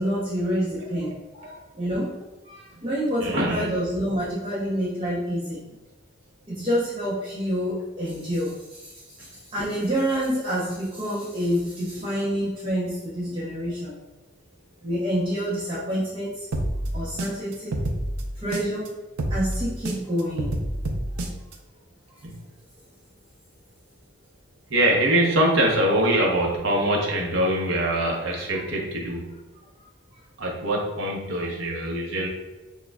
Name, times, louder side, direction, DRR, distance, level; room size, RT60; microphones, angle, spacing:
voice 1, 0.0-2.2 2.4-5.6 6.5-14.0 14.8-16.5 16.9-17.7 18.4-18.9 19.3-20.6, equal, 25° right, -9 dB, 0.8 m, -28 dB
voice 2, 3.2-3.7 12.0-12.1 22.2-22.3 24.7-29.3 30.4-32.3, right 1 dB, 65° right, -1 dB, 0.8 m, -23 dB
sound 1, 16.5-18.9 19.2-21.5, right 1 dB, 90° right, 0.5 m, -28 dB
6.2 x 2.3 x 2.3 m, 1.1 s
head